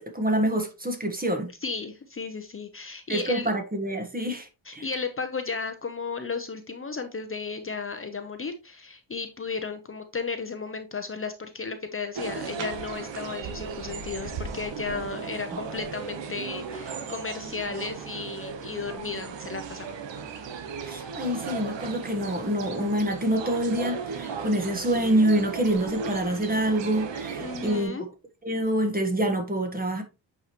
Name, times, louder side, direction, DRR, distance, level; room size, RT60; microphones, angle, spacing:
voice 1, 0.0-1.5 3.1-4.9 20.8-28.0 28.4-30.0, right 1 dB, 20° right, 1.3 m, -26 dB
voice 2, 1.6-3.5 4.7-20.0 27.4-28.1, left 4 dB, 30° left, 0.8 m, -34 dB
sound 1, 12.2-27.8, right 5 dB, 80° right, 1.1 m, -36 dB
8.4 x 4.8 x 3.0 m
wide cardioid pair, 115°, 43 cm